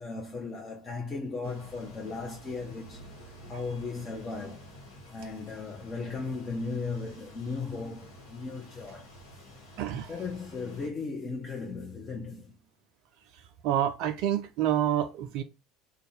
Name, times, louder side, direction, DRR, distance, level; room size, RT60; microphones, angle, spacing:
voice 1, 0.0-4.7 5.1-9.2 10.1-12.5, left 4 dB, 35° left, 0.7 m, -37 dB
sound 1, 1.4-10.9, equal, 70° left, 1.0 m, -50 dB
voice 2, 9.8-10.1 13.6-15.4, right 11 dB, 60° right, 0.3 m, -28 dB
2.5 x 2.2 x 3.9 m
figure-of-eight pair, 65°, 0 cm